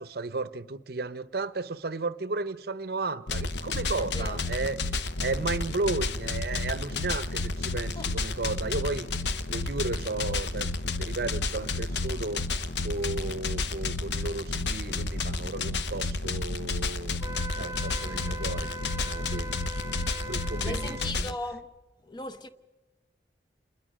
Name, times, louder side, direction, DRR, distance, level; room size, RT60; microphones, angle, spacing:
voice 1, 0.0-4.8 5.2-9.1 9.5-10.7 11.0-12.5 12.8-17.2 17.6-18.7 19.0-19.6 20.2-21.4, right 3 dB, 55° right, 0.7 m, -34 dB
sound 1, 3.3-21.3, left 3 dB, 70° left, 0.8 m, -31 dB
voice 2, 4.0-4.4 8.0-8.1 20.6-21.7 22.0-22.5, left 2 dB, 25° left, 0.9 m, -37 dB
Wind instrument woodwind instrument, 17.2-21.1, right 1 dB, 15° right, 0.8 m, -40 dB
28.0 x 20.5 x 6.3 m
head